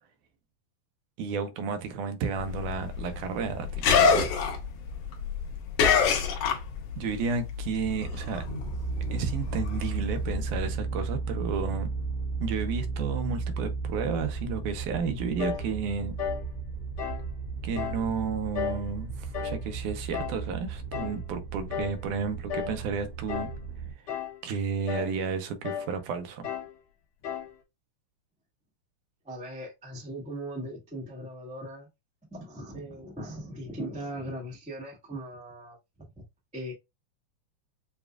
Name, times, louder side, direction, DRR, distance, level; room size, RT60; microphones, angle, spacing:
voice 1, 1.2-4.5 6.2-6.6 7.0-8.5 9.1-11.9 12.4-16.2 17.6-23.5 24.1-24.2 24.4-26.5, right 5 dB, 85° right, 2.2 m, -32 dB
sound 1, 2.4-7.1 7.3-10.7, left 6 dB, 75° left, 2.2 m, -26 dB
sound 2, 7.8-23.9, right 4 dB, 65° right, 1.6 m, -35 dB
sound 3, 15.4-15.7 16.2-16.5 17.0-17.3 17.8-18.0 18.5-18.9 19.3-19.6 20.1-20.4 20.9-21.2 21.7-22.0 22.5-22.8 23.3-23.6 24.1-24.4 24.9-25.1 25.6-25.9 26.4-26.7 27.2-27.5, left 8 dB, 55° left, 1.7 m, -34 dB
voice 2, 29.2-31.9 32.3-35.8 36.2-36.3 36.5-36.7, right 1 dB, 10° right, 0.3 m, -39 dB
6.9 x 2.4 x 2.3 m
omnidirectional pair, 3.6 m